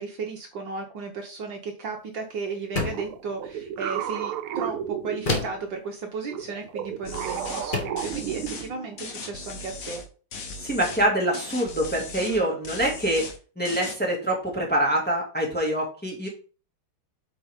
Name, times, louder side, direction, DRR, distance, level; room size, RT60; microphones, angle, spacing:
voice 1, 0.0-10.0 12.2-12.6, right 4 dB, 60° right, 2 dB, 1.6 m, -35 dB
sound 1, 2.7-3.2 5.3-5.7 7.0-7.2 7.7-8.1, left 3 dB, 30° left, 1.0 m, -28 dB
sound 2, 2.9-5.7 6.3-9.0, right 9 dB, 80° right, 1.5 m, -33 dB
sound 3, 7.0-7.7 8.0-8.7 9.0-10.1 10.3-11.1 11.3-12.4 12.6-13.4 13.6-14.0, left 3 dB, 50° left, 1.2 m, -38 dB
voice 2, 10.6-13.3 13.6-16.3, right 1 dB, 5° left, -1 dB, 2.0 m, -25 dB
8.6 x 5.3 x 3.6 m, 0.38 s
omnidirectional pair, 2.4 m